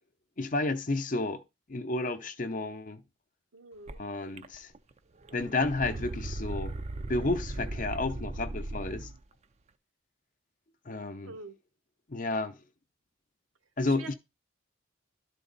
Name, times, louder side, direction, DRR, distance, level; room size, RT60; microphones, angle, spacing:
voice 1, 0.4-1.4 1.7-3.0 4.0-4.7 5.3-6.7 7.1-9.1 10.9-11.3 12.1-12.6 13.8-14.1, left 2 dB, 40° left, 0.7 m, -31 dB
voice 2, 3.5-4.0 11.2-11.6 13.9-14.1, right 3 dB, 80° right, 1.1 m, -45 dB
sound 1, 3.9-4.0 4.4-4.9 5.2-9.2, right 2 dB, 35° right, 0.5 m, -37 dB
12.0 x 4.0 x 4.0 m
head